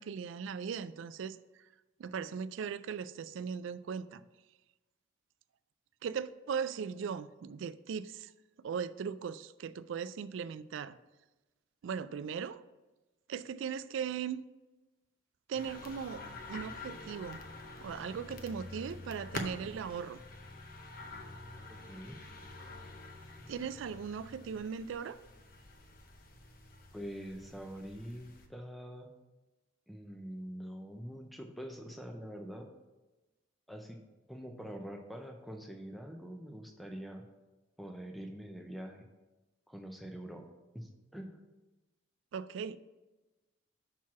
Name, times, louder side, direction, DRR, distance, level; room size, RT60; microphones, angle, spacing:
voice 1, 0.0-1.4 2.0-4.2 6.0-8.3 8.6-11.0 11.8-12.6 13.3-14.4 15.5-17.4 17.8-20.2 23.5-25.2 42.3-42.8, right 6 dB, 75° right, 16 dB, 0.3 m, -38 dB
sound 1, 15.5-28.5, left 2 dB, 45° left, 0.7 m, -47 dB
voice 2, 21.7-22.2 26.9-29.1 29.9-32.7 33.7-34.0 34.3-37.2 37.8-39.0 39.7-40.4 40.7-41.4, equal, ahead, 3 dB, 0.5 m, -45 dB
5.9 x 4.6 x 5.8 m, 1.1 s
head